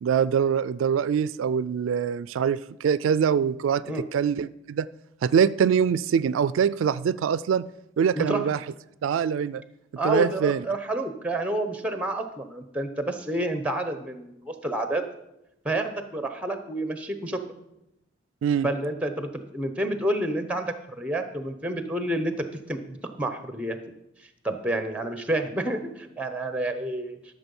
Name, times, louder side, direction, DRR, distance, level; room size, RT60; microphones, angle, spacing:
voice 1, 0.0-3.8 4.1-4.9 5.2-7.7 8.0-8.6 9.0-9.6 10.0-10.6 18.4-18.7, right 7 dB, 90° right, 18 dB, 0.3 m, -24 dB
voice 2, 10.0-15.0 15.6-17.4 18.6-23.8 24.2-27.2, right 1 dB, 5° right, 8 dB, 0.8 m, -29 dB
13.0 x 6.5 x 5.4 m, 0.87 s
head